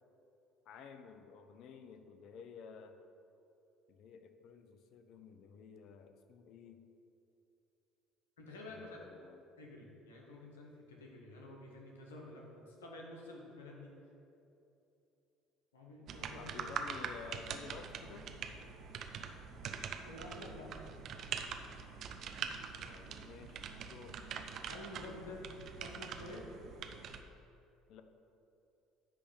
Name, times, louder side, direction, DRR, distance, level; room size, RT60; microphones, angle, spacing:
voice 1, 0.7-3.0 3.9-6.9 8.7-9.4 16.4-18.3 22.8-24.3 27.9-28.0, left 6 dB, 60° left, 7 dB, 0.6 m, -52 dB
voice 2, 8.4-9.0 9.6-13.9 15.7-16.6 20.0-20.7 24.3-24.4 24.7-25.4 25.8-26.5, left 2 dB, 85° left, -1 dB, 1.3 m, -50 dB
Typing On Keyboard, 16.1-27.2, right 6 dB, 55° right, 0.6 m, -44 dB
10.0 x 3.4 x 7.1 m, 2.8 s
hypercardioid pair, 60°, 0 cm